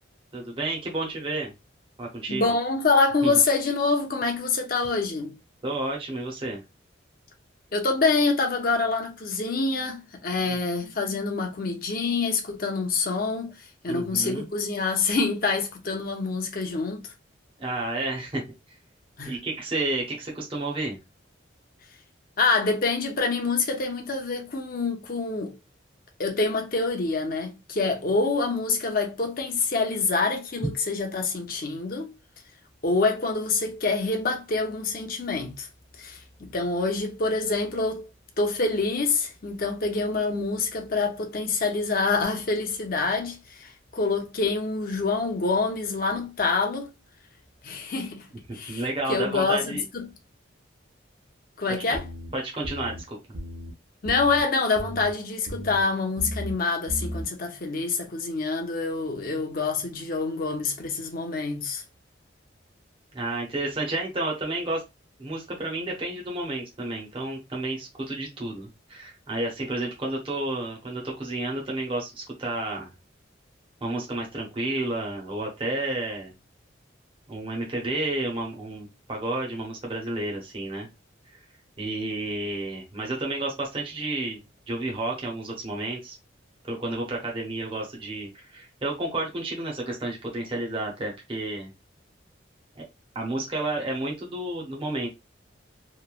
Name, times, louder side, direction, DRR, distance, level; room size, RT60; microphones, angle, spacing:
voice 1, 0.3-1.5 2.0-2.4 3.2-3.4 5.6-6.6 13.9-14.5 17.6-18.4 19.2-21.0 30.6-30.7 48.7-49.8 52.3-53.2 63.1-64.8 65.2-72.9 73.8-76.3 77.3-80.9 81.3-81.4 81.8-84.4 84.7-86.1 86.6-91.7 92.8-92.9 93.1-95.1, right 2 dB, 30° right, 0.6 m, -31 dB
voice 2, 2.3-5.3 7.7-13.5 13.8-17.1 19.2-19.3 22.4-25.5 26.2-32.1 32.8-35.7 36.0-38.1 38.4-46.9 47.6-48.2 48.5-48.8 49.1-50.1 51.6-52.0 54.0-61.8, left 3 dB, 45° left, 0.6 m, -26 dB
sound 1, 51.9-52.3 52.6-53.0 53.3-53.7 54.0-54.4 54.8-55.1 55.5-55.8 56.2-56.5 56.9-57.2, equal, 90° right, 0.6 m, -35 dB
3.0 x 2.1 x 2.3 m
head